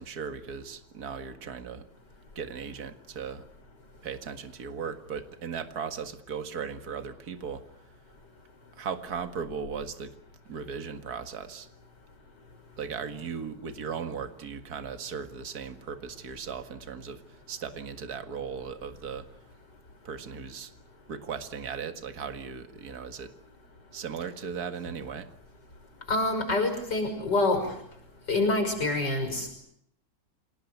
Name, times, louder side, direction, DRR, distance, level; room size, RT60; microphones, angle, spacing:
voice 1, 0.0-1.9 2.4-3.4 4.0-7.6 8.8-10.1 10.5-11.7 12.8-19.3 20.0-20.7 21.1-23.3 23.9-25.3, right 6 dB, 50° right, 9 dB, 2.2 m, -37 dB
voice 2, 26.1-27.7 28.3-29.5, left 2 dB, 55° left, 6 dB, 6.6 m, -26 dB
27.5 x 18.5 x 9.5 m, 0.71 s
omnidirectional pair, 2.2 m